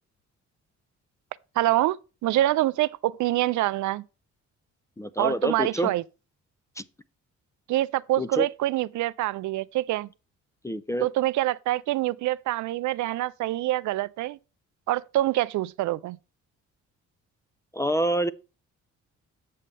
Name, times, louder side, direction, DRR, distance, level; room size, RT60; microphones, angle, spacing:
voice 1, 1.6-2.0 2.2-4.0 5.2-6.0 7.7-10.1 11.0-14.4 14.9-16.2, right 15 dB, 75° right, 0.5 m, -25 dB
voice 2, 5.0-5.9 6.8-6.9 8.2-8.5 10.6-11.1 17.7-18.3, equal, 10° left, 0.3 m, -27 dB
8.5 x 6.5 x 3.3 m
cardioid pair, 90°, 30 cm